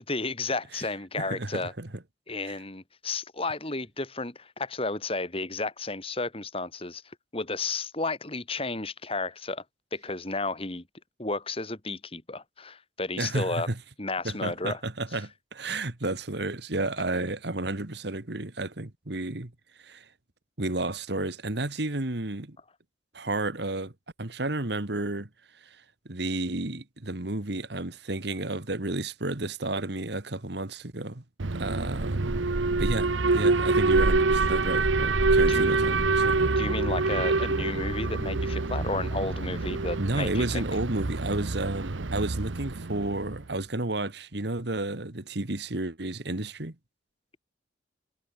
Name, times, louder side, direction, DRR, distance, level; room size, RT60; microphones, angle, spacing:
voice 1, 0.1-1.7 2.3-7.0 7.3-9.6 9.9-10.8 11.2-13.7 14.0-14.8 35.5-35.6 36.6-40.6, left 3 dB, 30° left, 2.5 m, -32 dB
voice 2, 1.2-1.9 2.5-2.6 13.2-13.8 14.2-19.5 19.8-20.1 20.6-22.6 23.1-23.9 24.2-25.8 26.1-31.2 31.5-32.4 32.8-36.6 40.0-46.8, right 2 dB, 60° right, 1.7 m, -32 dB
Alarm, 31.4-43.4, right 3 dB, 80° right, 1.1 m, -26 dB
head